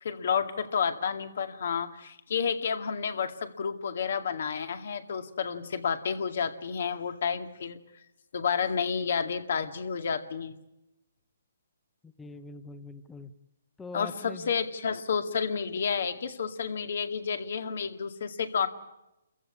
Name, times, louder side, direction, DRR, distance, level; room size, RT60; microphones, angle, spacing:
voice 1, 0.0-7.8 8.3-10.5 13.9-18.7, left 6 dB, 60° left, 8 dB, 2.0 m, -30 dB
voice 2, 12.0-13.3 13.8-14.5, left 3 dB, 5° left, 12 dB, 0.9 m, -43 dB
27.5 x 15.0 x 9.7 m, 0.92 s
hypercardioid pair, 155°, 0 cm